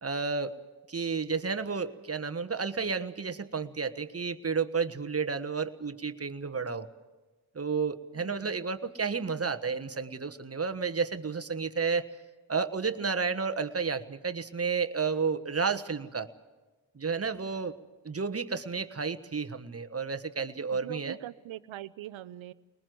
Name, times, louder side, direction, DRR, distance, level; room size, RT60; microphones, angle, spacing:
voice 1, 0.0-0.6 0.9-6.9 7.5-12.1 12.5-16.3 16.9-17.8 18.0-21.2, right 5 dB, 30° right, 9 dB, 1.3 m, -31 dB
voice 2, 8.1-8.5 20.7-22.5, right 14 dB, 70° right, 16 dB, 0.8 m, -42 dB
21.5 x 20.0 x 7.9 m, 1.2 s
supercardioid pair, 45°, 48 cm